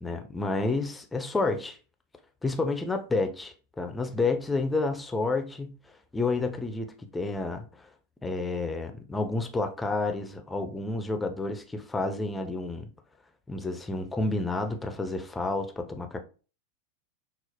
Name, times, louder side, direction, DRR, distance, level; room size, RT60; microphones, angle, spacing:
voice 1, 0.0-1.8 2.4-5.8 6.1-7.9 8.2-12.9 13.5-16.2, left 3 dB, 10° left, 0.5 m, -30 dB
6.0 x 2.0 x 2.8 m
figure-of-eight pair, 90°, 0 cm